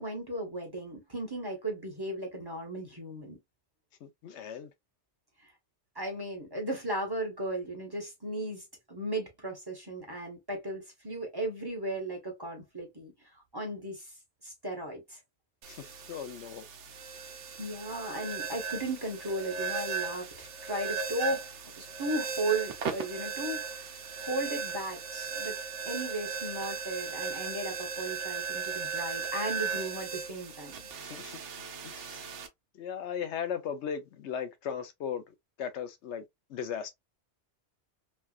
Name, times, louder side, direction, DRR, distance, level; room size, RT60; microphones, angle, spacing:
voice 1, 0.0-3.4 5.9-14.1 14.4-15.2 17.6-23.9 24.2-25.6 25.8-30.8, right 1 dB, 20° right, 1.1 m, -36 dB
voice 2, 4.0-4.7 15.7-16.7 31.0-31.4 31.8-32.3 32.7-35.2 35.6-36.2 36.5-36.9, left 8 dB, 80° left, 0.9 m, -37 dB
sound 1, 15.6-32.5, right 5 dB, 85° right, 1.0 m, -37 dB
3.3 x 2.3 x 2.4 m
omnidirectional pair, 1.2 m